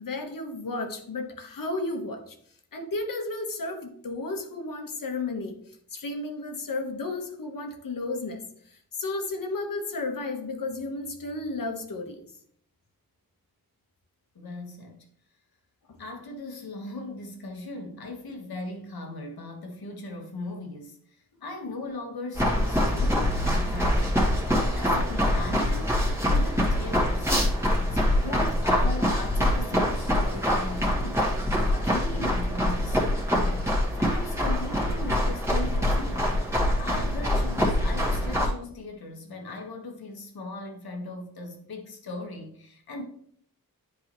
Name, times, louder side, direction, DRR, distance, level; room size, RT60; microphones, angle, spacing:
voice 1, 0.0-2.3 2.7-12.2 15.9-16.0, left 2 dB, 65° left, 4 dB, 1.3 m, -33 dB
voice 2, 14.3-15.1 16.0-27.4 27.9-31.3 31.7-33.0 33.3-33.7 33.9-36.5 36.8-43.0, left 2 dB, 90° left, 2 dB, 1.5 m, -38 dB
sound 1, 22.3-38.5, left 1 dB, 5° right, 1.6 m, -24 dB
10.5 x 4.7 x 3.1 m, 0.63 s
wide cardioid pair, 140°, 36 cm